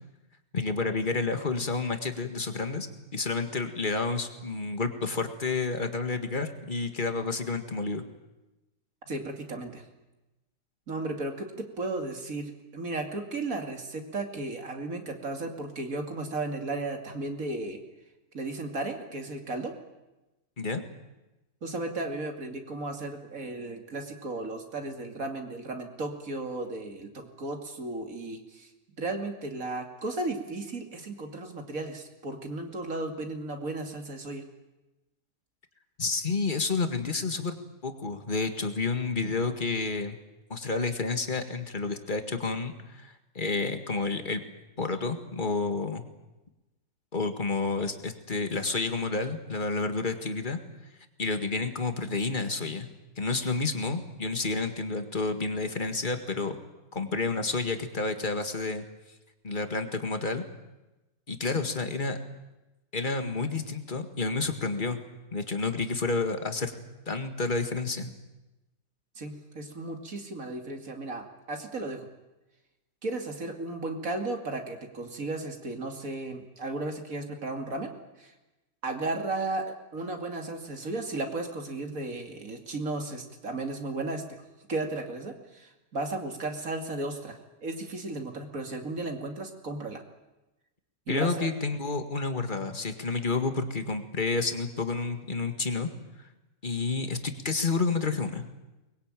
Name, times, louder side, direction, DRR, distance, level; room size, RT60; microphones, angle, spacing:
voice 1, 0.5-2.9 3.1-8.0 20.6-20.8 36.0-37.6 37.8-40.2 40.5-44.4 44.8-46.1 47.1-50.6 51.2-52.9 53.2-56.6 56.9-58.8 59.4-60.4 61.3-62.2 62.9-65.0 65.3-66.7 67.1-68.1 91.1-95.9 96.6-98.4, left 3 dB, 30° left, 7 dB, 2.0 m, -30 dB
voice 2, 9.1-9.8 10.9-17.8 18.3-19.7 21.6-28.7 29.0-34.4 69.2-72.1 73.0-77.9 78.2-78.3 78.8-84.2 84.7-90.0 91.1-91.5, right 2 dB, 60° right, 4 dB, 2.9 m, -35 dB
23.0 x 21.5 x 9.0 m, 1.0 s
omnidirectional pair, 1.7 m